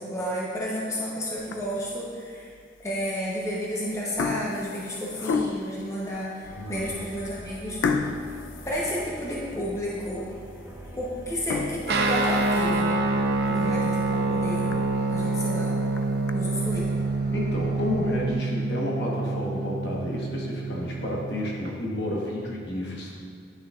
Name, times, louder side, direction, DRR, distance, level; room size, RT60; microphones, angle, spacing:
voice 1, 0.0-7.8 8.7-10.3 10.9-13.0 13.5-14.7 15.1-15.7 16.3-16.9, equal, 15° left, -5 dB, 0.7 m, -31 dB
sound 1, 1.4-1.9 2.5-2.6 3.4-3.7 4.0-5.8 6.4-6.5 6.9-7.0 7.8-9.6 10.0-10.1 10.6-10.7 11.3-12.9 13.4-13.5 13.9-14.0 14.3-14.4 14.7-14.8 15.7-16.3, left 4 dB, 90° left, 0.4 m, -31 dB
sound 2, 6.4-18.3, right 1 dB, 15° right, 0.7 m, -44 dB
voice 2, 6.5-6.9 17.3-23.1, left 1 dB, 60° left, -3 dB, 1.1 m, -30 dB
Guitar, 11.9-21.7, right 3 dB, 60° right, 0.5 m, -26 dB
9.5 x 6.2 x 2.3 m, 2.2 s
head